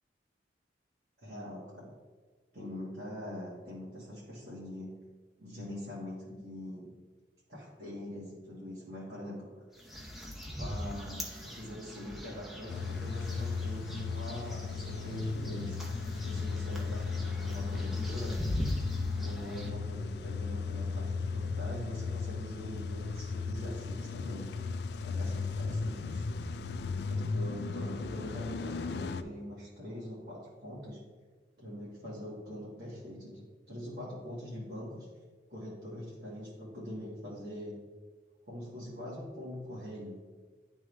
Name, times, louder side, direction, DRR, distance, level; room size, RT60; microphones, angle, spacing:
voice 1, 1.2-1.9 2.5-4.9 5.4-6.9 7.5-9.6 10.6-15.8 16.2-18.4 19.1-24.4 25.0-26.2 27.1-31.0 31.6-35.1 35.5-37.8 38.5-40.2, left 1 dB, 60° right, -8 dB, 1.7 m, -43 dB
sound 1, 9.7-19.7, equal, ahead, 0.7 m, -41 dB
Car / Engine starting / Idling, 12.7-29.2, left 4 dB, 65° left, 0.3 m, -35 dB
10.5 x 3.6 x 3.3 m, 1.4 s
head